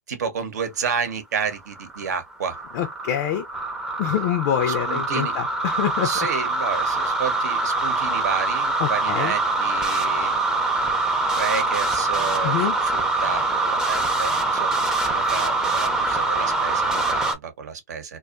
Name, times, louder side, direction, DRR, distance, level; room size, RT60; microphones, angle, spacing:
voice 1, 0.1-2.6 4.7-5.4 6.0-10.3 10.7-10.9 11.3-18.2, right 6 dB, 75° right, 0.8 m, -31 dB
sound 1, 1.4-17.4, right 2 dB, 5° right, 0.5 m, -24 dB
voice 2, 2.7-3.4 4.0-6.1 8.8-9.3 12.4-12.8, left 10 dB, 45° left, 0.4 m, -25 dB
2.5 x 2.3 x 2.4 m
hypercardioid pair, 125°, 9 cm